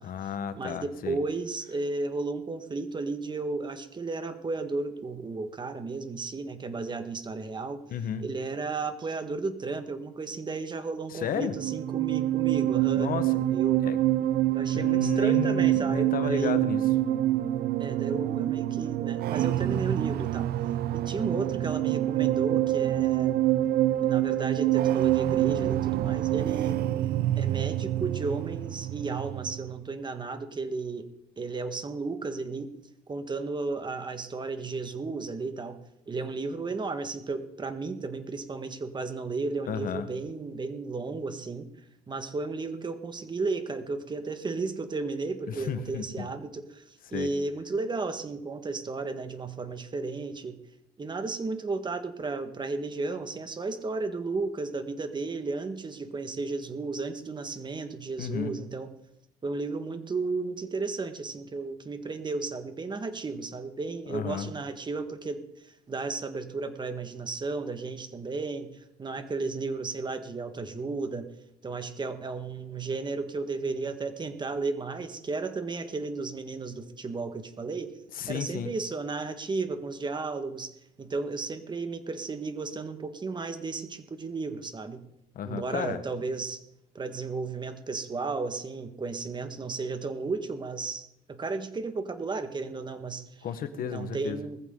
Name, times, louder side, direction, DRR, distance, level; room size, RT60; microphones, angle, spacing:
voice 1, 0.0-1.2 7.9-8.3 11.1-11.6 12.9-13.4 13.8-14.0 14.7-16.9 39.7-40.0 45.5-46.3 47.1-47.3 58.2-58.6 64.1-64.5 78.1-78.8 85.3-86.0 93.4-94.4, left 8 dB, 60° left, 11 dB, 1.4 m, -33 dB
voice 2, 0.5-7.8 8.2-13.8 14.5-16.8 17.8-20.5 20.9-23.4 24.0-26.8 27.3-31.1 31.4-32.7 33.1-35.8 36.1-41.7 42.1-46.8 47.1-50.6 51.0-58.9 59.4-71.3 71.6-77.9 78.3-85.0 85.4-86.6 86.9-93.2 93.8-94.6, right 3 dB, 25° right, 8 dB, 1.7 m, -34 dB
sound 1, 11.4-29.8, right 14 dB, 65° right, 0.5 m, -26 dB
20.5 x 15.0 x 3.9 m, 0.78 s
cardioid pair, 110°, 17 cm